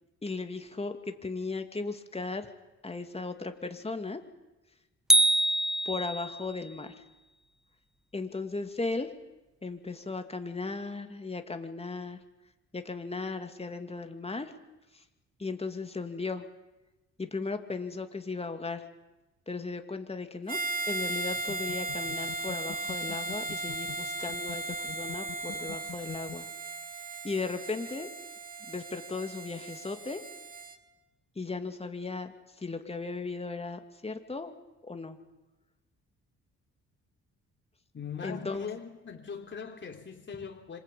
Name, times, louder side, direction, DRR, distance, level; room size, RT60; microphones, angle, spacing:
voice 1, 0.2-2.5 2.8-4.2 5.8-6.9 8.1-9.1 9.6-12.2 12.7-14.5 15.4-16.5 17.2-18.8 19.5-20.6 20.9-26.5 27.2-28.1 28.7-30.2 31.4-34.5 34.8-35.2 38.2-38.7, left 3 dB, 20° left, 6 dB, 2.7 m, -36 dB
sound 1, 5.1-6.5, right 1 dB, ahead, 1.2 m, -24 dB
Harmonica, 20.5-30.8, right 2 dB, 30° right, 2.6 m, -36 dB
sound 2, 21.4-26.4, left 11 dB, 70° left, 2.2 m, -45 dB
voice 2, 37.9-40.8, left 6 dB, 40° left, 2 dB, 3.6 m, -40 dB
26.5 x 25.0 x 8.6 m, 1.1 s
cardioid pair, 90°, 30 cm